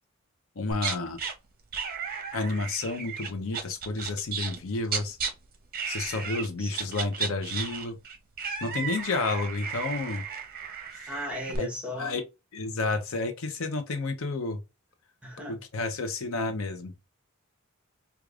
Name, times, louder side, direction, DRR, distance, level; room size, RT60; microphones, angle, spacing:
voice 1, 0.6-1.2 2.3-5.2 5.9-8.0 8.6-10.2 10.9-11.1 11.6-11.7 12.0-12.2 12.5-14.6 15.5-16.9, left 3 dB, 65° left, 0.6 m, -31 dB
sound 1, 0.7-1.3 1.7-5.3 5.7-6.5 6.7-11.6, right 6 dB, 40° right, 0.7 m, -34 dB
voice 2, 6.2-6.7 8.7-8.9 11.1-12.2 15.2-15.6, equal, 5° right, 1.0 m, -37 dB
4.8 x 2.3 x 2.4 m
head